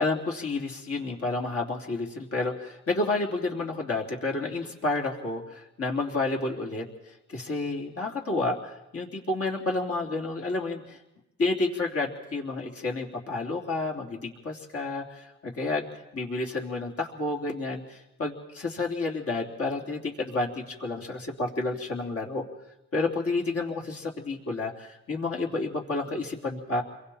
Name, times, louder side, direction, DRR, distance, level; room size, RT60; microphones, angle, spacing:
voice 1, 0.0-11.0 11.4-15.9 16.1-22.5 22.9-26.8, left 3 dB, 50° left, 0 dB, 3.6 m, -30 dB
28.5 x 23.0 x 4.4 m, 0.90 s
cardioid pair, 90°, 30 cm